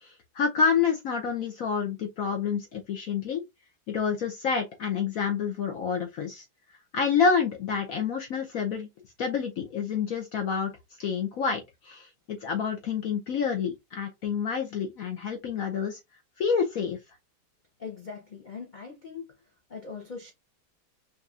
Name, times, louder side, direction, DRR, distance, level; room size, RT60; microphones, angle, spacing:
voice 1, 0.0-3.4 3.9-6.4 6.9-8.9 9.2-10.7 11.0-16.0 16.4-17.0, left 6 dB, 65° left, 0.9 m, -28 dB
voice 2, 17.8-19.4 19.7-20.3, left 5 dB, 45° left, 0.6 m, -41 dB
5.3 x 2.8 x 2.4 m
omnidirectional pair, 2.2 m